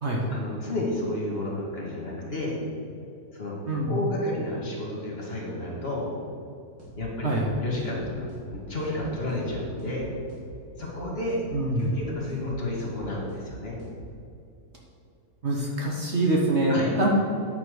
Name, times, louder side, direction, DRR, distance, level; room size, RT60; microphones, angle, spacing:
voice 1, 0.3-2.6 3.3-3.6 3.9-6.1 7.0-7.3 7.6-10.1 10.8-11.4 11.8-13.8 16.7-16.9, left 1 dB, 40° left, -4 dB, 2.0 m, -31 dB
voice 2, 3.7-4.0 7.2-7.6 11.5-11.9 15.4-17.1, right 1 dB, 45° right, -2 dB, 1.3 m, -25 dB
sound 1, 6.8-7.0 7.3-7.5 7.8-8.0 8.3-8.5 8.8-9.0 9.3-9.5 9.8-10.0 10.3-10.5 10.8-11.0 11.3-11.5 11.8-12.0 12.3-12.5 12.8-13.0 13.3-13.5 13.8-14.0, right 2 dB, 65° right, 2.7 m, -46 dB
9.5 x 5.7 x 6.5 m, 2.6 s
omnidirectional pair, 1.7 m